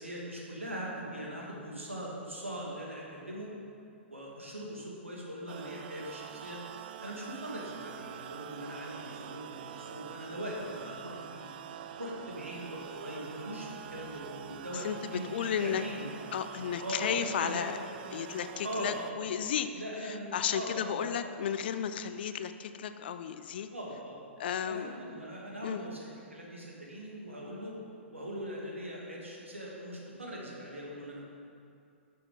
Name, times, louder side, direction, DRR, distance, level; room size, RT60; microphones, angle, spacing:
voice 1, 0.0-3.5 4.1-6.6 7.0-11.5 12.0-16.0 16.8-17.1 17.4-17.7 18.6-19.1 19.7-21.2 23.7-24.2 24.7-27.7 28.1-31.2, equal, 85° right, -3 dB, 2.1 m, -41 dB
sound 1, 5.5-19.1, right 9 dB, 50° right, 0.4 m, -45 dB
voice 2, 14.7-15.8 16.3-17.8 18.1-19.7 20.0-23.7 24.4-24.9 25.6-25.8, left 8 dB, 55° left, 11 dB, 0.5 m, -33 dB
11.5 x 6.8 x 3.9 m, 2.5 s
figure-of-eight pair, 110°, 7 cm